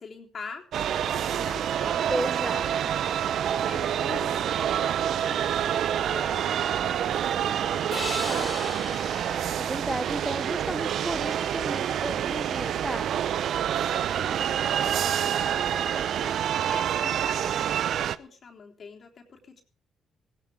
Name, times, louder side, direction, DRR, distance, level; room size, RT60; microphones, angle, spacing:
voice 1, 0.0-2.3 3.5-9.0 13.7-19.6, left 5 dB, 50° left, 2 dB, 3.6 m, -44 dB
sound 1, 0.7-18.2, right 9 dB, 70° right, 0.7 m, -27 dB
voice 2, 2.1-2.9 8.2-8.5 9.6-13.2, right 1 dB, 10° right, 13 dB, 0.7 m, -33 dB
sound 2, 7.9-11.2, left 3 dB, 35° left, 3.0 m, -39 dB
17.5 x 16.5 x 3.6 m, 0.35 s
cardioid pair, 90°, 0 cm